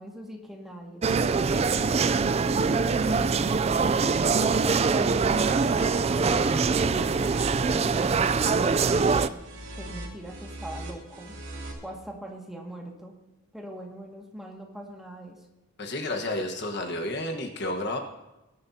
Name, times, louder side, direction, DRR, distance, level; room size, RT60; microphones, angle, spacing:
voice 1, 0.0-1.5 2.7-7.2 7.7-11.4 11.8-13.1 13.5-15.5, equal, ahead, -1 dB, 1.9 m, -41 dB
sound 1, 1.0-9.3, right 4 dB, 30° right, 0.3 m, -23 dB
sound 2, 5.1-11.7, right 1 dB, 60° right, 2.7 m, -41 dB
voice 2, 15.8-18.0, left 1 dB, 55° left, 4 dB, 1.3 m, -31 dB
21.0 x 11.5 x 2.8 m, 1.0 s
head